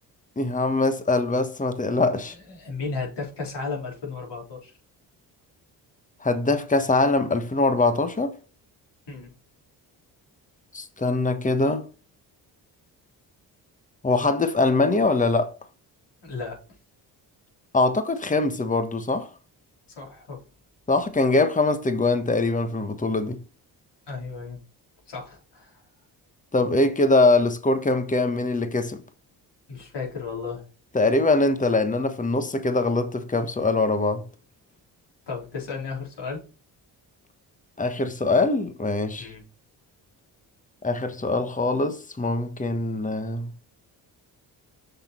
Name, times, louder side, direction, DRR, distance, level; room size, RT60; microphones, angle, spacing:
voice 1, 0.4-2.3 6.2-8.3 10.7-11.9 14.0-15.5 17.7-19.3 20.9-23.4 26.5-29.0 30.9-34.2 37.8-39.3 40.8-43.5, left 2 dB, 15° left, 1.3 m, -23 dB
voice 2, 2.2-4.7 9.1-9.3 16.2-16.6 19.9-20.4 24.1-24.6 25.1-25.8 29.7-30.6 35.3-36.4 39.2-39.4, left 4 dB, 60° left, 4.0 m, -34 dB
6.6 x 6.1 x 4.4 m
hypercardioid pair, 50°, 47 cm